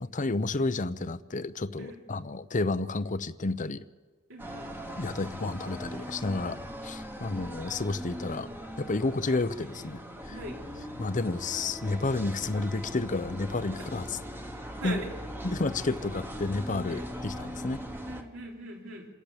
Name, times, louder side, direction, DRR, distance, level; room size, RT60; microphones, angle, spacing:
voice 1, 0.0-3.8 5.0-8.5 8.8-10.4 11.0-14.2 14.8-15.0 15.4-17.8, left 3 dB, 40° left, 13 dB, 0.7 m, -31 dB
voice 2, 4.3-4.7 10.3-10.6 13.8-13.9 14.8-15.1 16.9-17.1 18.1-19.1, right 1 dB, 65° right, 0 dB, 3.6 m, -40 dB
sound 1, 4.4-18.2, equal, 10° right, 1.5 m, -40 dB
27.0 x 14.0 x 8.7 m, 1.4 s
head